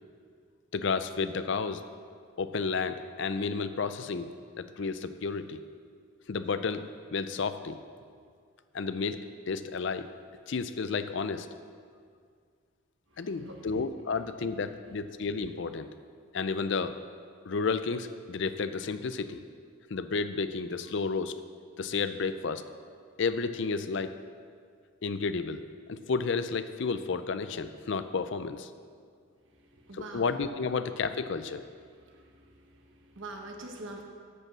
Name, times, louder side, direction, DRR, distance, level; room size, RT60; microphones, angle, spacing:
voice 1, 0.7-1.8 2.4-4.3 4.6-5.6 6.3-7.8 8.7-10.1 10.5-11.5 13.2-15.9 16.3-17.0 17.5-19.4 19.9-21.4 21.8-22.7 23.2-24.1 25.0-25.6 25.9-28.7 29.9-31.6, left 4 dB, 55° left, 11 dB, 0.5 m, -31 dB
voice 2, 13.1-13.8 29.6-30.3 32.0-32.5 32.8-34.0, right 2 dB, 60° right, 2 dB, 1.3 m, -45 dB
11.0 x 5.4 x 7.4 m, 2.1 s
head